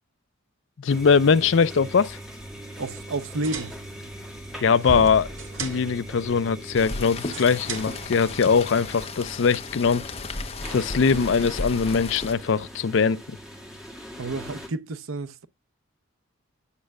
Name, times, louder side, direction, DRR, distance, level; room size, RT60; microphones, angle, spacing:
voice 1, 0.8-2.2 4.6-5.3 5.6-10.0 10.7-13.4, left 5 dB, 65° left, 0.4 m, -21 dB
sound 1, 0.9-14.7, equal, ahead, 1.9 m, -41 dB
voice 2, 2.8-3.7 14.2-15.5, right 2 dB, 85° right, 0.7 m, -31 dB
sound 2, 3.2-9.1, right 3 dB, 70° right, 1.9 m, -39 dB
Rain, 6.7-12.3, left 3 dB, 30° left, 0.8 m, -35 dB
9.7 x 6.4 x 2.3 m
head